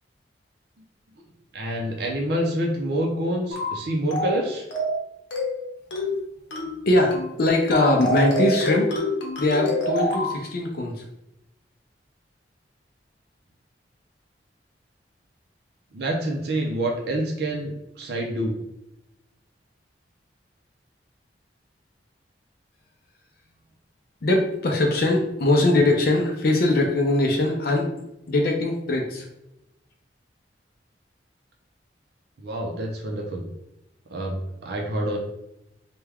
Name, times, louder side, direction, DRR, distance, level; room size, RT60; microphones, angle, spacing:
voice 1, 1.5-4.7 15.9-18.6 32.4-33.4 34.1-35.2, right 1 dB, 65° right, 0 dB, 0.5 m, -27 dB
sound 1, 3.5-3.8 4.1-4.4 4.7-5.0 5.3-5.6 5.9-6.2 6.5-6.8 7.1-7.3 7.7-10.4, left 1 dB, 85° left, 0.8 m, -26 dB
voice 2, 6.9-8.9 9.4-11.0 24.2-27.9 28.3-29.3, left 2 dB, 55° left, 1 dB, 0.5 m, -21 dB
3.3 x 2.2 x 3.4 m, 0.86 s
head